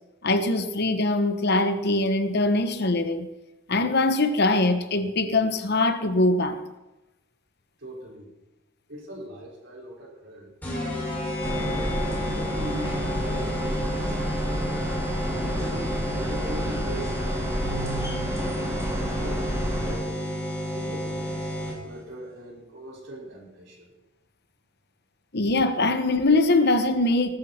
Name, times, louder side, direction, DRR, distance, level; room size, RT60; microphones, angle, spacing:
voice 1, 0.2-3.3 3.7-6.6 25.3-27.4, left 2 dB, 55° left, 1.1 m, -22 dB
voice 2, 7.8-8.3 8.9-10.5 11.4-14.5 15.2-20.3 20.7-21.5 21.8-23.9, right 1 dB, 65° right, 5.5 m, -40 dB
sound 1, 10.6-22.0, equal, 10° left, 6.1 m, -31 dB
sound 2, 11.4-20.0, right 1 dB, 15° right, 4.0 m, -30 dB
19.0 x 13.0 x 4.4 m
head